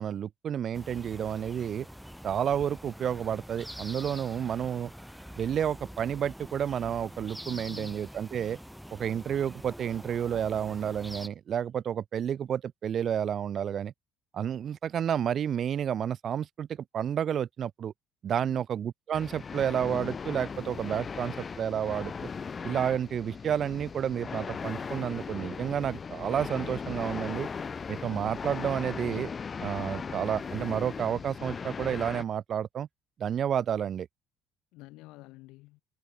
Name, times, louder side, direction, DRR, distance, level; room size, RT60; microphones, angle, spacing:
voice 1, 0.0-1.9 2.2-4.9 5.4-8.6 8.9-13.9 14.3-17.9 18.2-22.3 22.6-27.5 27.9-29.3 29.6-32.9 33.2-34.1, right 9 dB, 50° right, 0.6 m, -30 dB
sound 1, 0.7-11.3, equal, ahead, 1.1 m, -45 dB
voice 2, 7.4-8.1 18.3-18.6 34.7-35.8, left 21 dB, 75° left, 4.6 m, -50 dB
sound 2, 19.1-32.2, left 5 dB, 35° left, 0.5 m, -38 dB
supercardioid pair, 70°, 0 cm